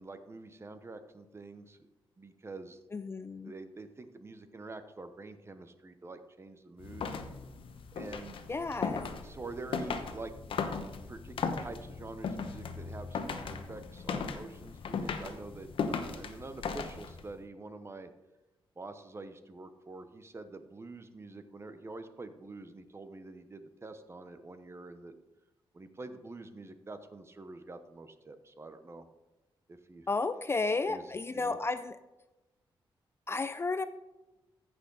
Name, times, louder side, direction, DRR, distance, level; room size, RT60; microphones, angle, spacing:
voice 1, 0.0-1.9 2.2-2.8 3.5-7.0 7.9-8.5 9.2-10.3 11.1-18.1 18.8-25.1 25.7-29.1 29.7-30.1 30.8-31.6, right 3 dB, 30° right, 10 dB, 0.9 m, -46 dB
voice 2, 2.9-3.5 8.5-9.1 30.1-31.9 33.3-33.9, left 3 dB, 25° left, 12 dB, 0.4 m, -32 dB
sound 1, 6.8-17.3, left 5 dB, 75° left, 1.0 m, -37 dB
14.5 x 6.2 x 4.0 m, 1.1 s
cardioid pair, 95°, 9 cm